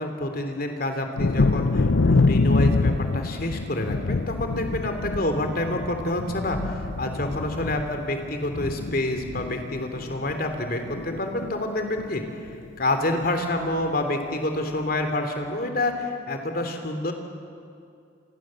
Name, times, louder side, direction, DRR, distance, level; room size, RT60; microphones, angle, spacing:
voice 1, 0.0-17.1, left 1 dB, 45° left, 6 dB, 3.1 m, -28 dB
Thunder, 1.2-10.6 10.9-11.6 12.0-12.1 12.5-12.7, left 3 dB, 65° left, 0.6 m, -25 dB
28.5 x 23.5 x 7.7 m, 2.4 s
head